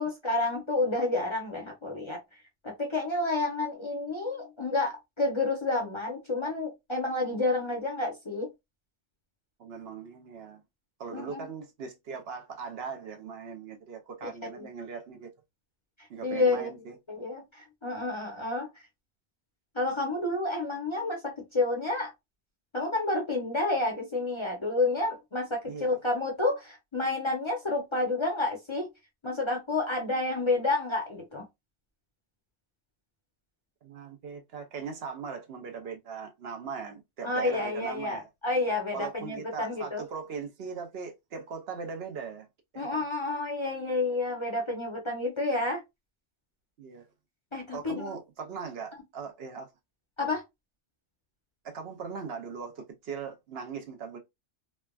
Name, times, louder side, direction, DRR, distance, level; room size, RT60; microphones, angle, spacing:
voice 1, 0.0-2.2 2.6-8.5 11.1-11.5 14.5-14.7 16.2-16.7 17.1-18.7 19.7-22.1 22.7-28.9 29.2-31.4 37.2-40.0 42.8-45.8 47.5-48.1 50.2-50.4, left 2 dB, 30° left, 0.6 m, -30 dB
voice 2, 9.6-10.6 11.0-15.3 16.1-17.0 25.7-26.0 33.8-38.3 38.9-42.5 42.7-43.0 46.8-47.1 47.7-49.7 51.6-54.2, right 5 dB, 65° right, 0.8 m, -39 dB
3.2 x 2.2 x 2.2 m
omnidirectional pair, 1.2 m